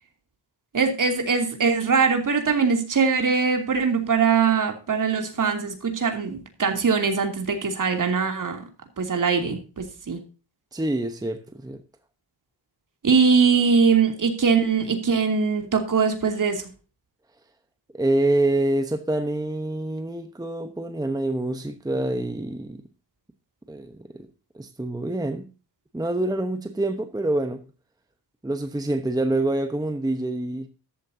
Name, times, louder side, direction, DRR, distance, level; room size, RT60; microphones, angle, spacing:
voice 1, 0.7-8.6 9.0-10.2 13.0-16.7, right 5 dB, 45° right, 2.9 m, -22 dB
voice 2, 10.7-11.8 17.9-22.8 23.7-24.3 24.5-25.5 25.9-27.6 28.4-30.7, right 1 dB, 10° right, 1.0 m, -26 dB
14.0 x 12.0 x 2.8 m
wide cardioid pair, 145°, 42 cm